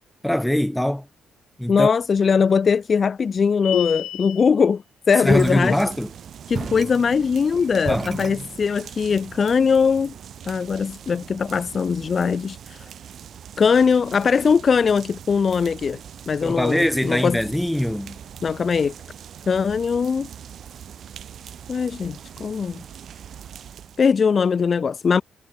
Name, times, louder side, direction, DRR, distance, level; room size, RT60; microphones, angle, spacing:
voice 1, 0.2-1.1 1.6-1.9 5.2-6.1 7.9-8.1 16.4-18.2, equal, 5° left, 2.3 m, -22 dB
voice 2, 1.7-4.8 5.1-5.8 6.5-10.1 10.5-12.9 13.6-16.0 16.3-17.4 18.4-18.9 19.5-20.3 21.7-22.8 24.0-25.2, left 6 dB, 40° left, 0.4 m, -20 dB
sound 1, 3.6-4.5, left 12 dB, 80° left, 1.2 m, -28 dB
sound 2, 5.2-24.0, right 9 dB, 60° right, 7.0 m, -42 dB
sound 3, 5.3-6.2 6.5-8.9, right 5 dB, 40° right, 3.7 m, -33 dB
cardioid pair, 90°, 0 cm